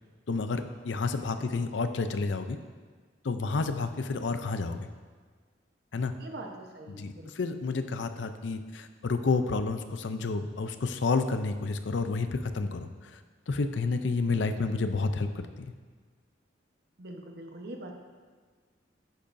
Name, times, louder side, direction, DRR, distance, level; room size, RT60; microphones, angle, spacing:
voice 1, 0.3-2.6 3.2-4.9 5.9-6.1 6.9-13.2 13.5-15.7, left 3 dB, 75° left, 9 dB, 0.5 m, -30 dB
voice 2, 6.2-7.5 17.0-18.0, right 1 dB, 55° right, 2 dB, 1.0 m, -44 dB
11.0 x 8.5 x 2.6 m, 1.5 s
head